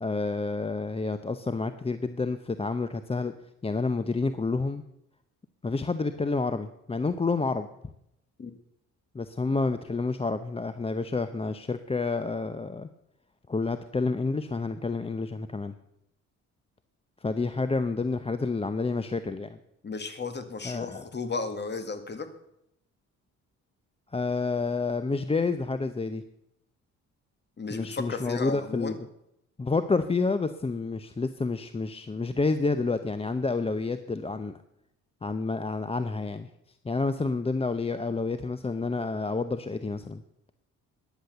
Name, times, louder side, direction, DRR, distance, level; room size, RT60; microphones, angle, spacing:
voice 1, 0.0-3.3 3.6-4.8 5.6-7.7 9.1-12.9 13.5-15.7 17.2-19.6 20.6-21.0 24.1-26.2 27.7-29.0 29.6-34.5 35.2-36.5 36.8-40.2, left 3 dB, 20° left, 11 dB, 0.7 m, -29 dB
voice 2, 19.8-22.3 27.6-29.0, left 4 dB, 35° left, 9 dB, 2.0 m, -34 dB
14.5 x 10.0 x 6.8 m, 0.80 s
cardioid pair, 90°, 30 cm